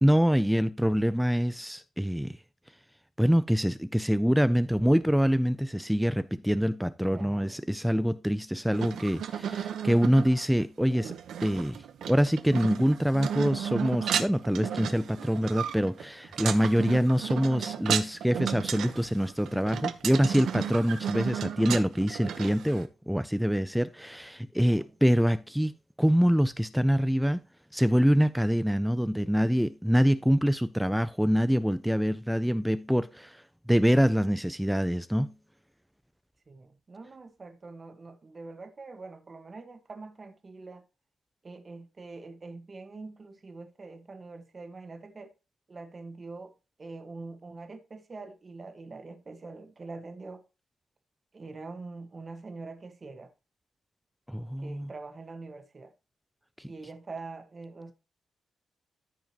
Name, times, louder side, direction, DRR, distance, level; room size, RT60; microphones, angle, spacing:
voice 1, 0.0-2.4 3.2-11.1 11.4-25.7 26.0-27.4 27.7-33.4 33.7-35.3 54.3-54.9 56.6-56.7, equal, ahead, 0.3 m, -25 dB
voice 2, 7.0-7.6 24.6-24.9 36.5-40.8 41.4-45.3 45.7-46.5 46.8-50.4 51.3-53.3 54.6-55.9 56.7-57.9, right 3 dB, 30° right, 1.4 m, -44 dB
sound 1, 8.7-22.8, right 8 dB, 80° right, 0.9 m, -34 dB
13.5 x 5.1 x 2.9 m
cardioid pair, 130°, 0 cm